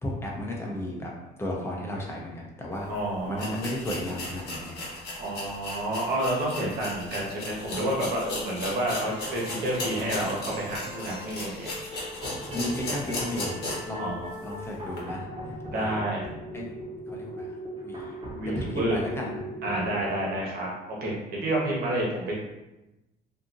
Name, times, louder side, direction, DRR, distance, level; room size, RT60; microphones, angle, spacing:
voice 1, 0.0-1.1 1.4-2.9 3.2-4.8 12.5-13.6 13.9-14.1 14.4-15.2 15.7-16.0 16.5-16.7 17.1-17.5 17.8-18.1 18.4-19.3, left 1 dB, 15° left, -2 dB, 0.7 m, -34 dB
sound 1, 2.8-2.9 3.3-14.0 14.3-14.4 14.9-15.0, left 2 dB, 70° left, 1.0 m, -36 dB
voice 2, 2.9-3.6 5.2-11.7 13.9-14.3 15.6-16.3 18.3-19.0 19.6-21.1 21.4-22.4, right 1 dB, 65° right, -3 dB, 1.0 m, -29 dB
sound 2, 8.8-20.4, equal, 30° right, 0.8 m, -39 dB
2.8 x 2.5 x 2.5 m, 0.96 s
cardioid pair, 110°, 17 cm